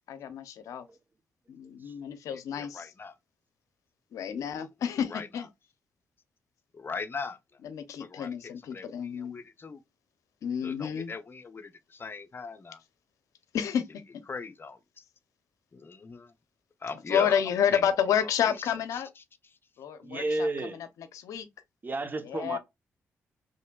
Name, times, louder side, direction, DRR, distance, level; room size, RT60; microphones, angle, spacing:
voice 1, 0.1-0.9 1.5-2.8 4.1-5.5 7.6-9.4 10.4-11.1 13.5-13.8 17.1-19.1 19.8-20.5 21.1-21.5 22.2-22.6, left 8 dB, 80° left, 0.6 m, -30 dB
voice 2, 2.3-3.2 4.5-4.7 5.1-5.5 6.7-7.6 8.0-9.8 10.6-12.8 14.3-15.0 15.7-16.3 16.8-17.9 18.2-18.6 18.9-19.6, left 4 dB, 40° left, 0.6 m, -40 dB
voice 3, 20.0-20.8 21.8-22.6, right 2 dB, 35° right, 0.9 m, -32 dB
4.3 x 3.1 x 2.2 m
supercardioid pair, 55°, 6 cm